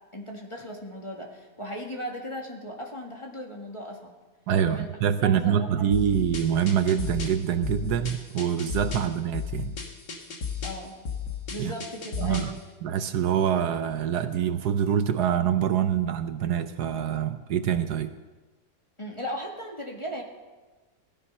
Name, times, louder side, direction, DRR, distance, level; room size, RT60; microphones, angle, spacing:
voice 1, 0.1-4.1 4.7-4.9 5.2-5.9 8.9-9.1 10.6-10.9 11.5-12.5 19.0-20.2, equal, 15° left, 1 dB, 1.8 m, -37 dB
voice 2, 4.5-9.7 11.6-11.7 12.2-12.5 12.8-18.1, right 9 dB, 70° right, 10 dB, 1.2 m, -25 dB
sound 1, 5.9-12.6, left 6 dB, 85° left, 2.4 m, -35 dB
17.0 x 12.5 x 5.6 m, 1.3 s
omnidirectional pair, 1.8 m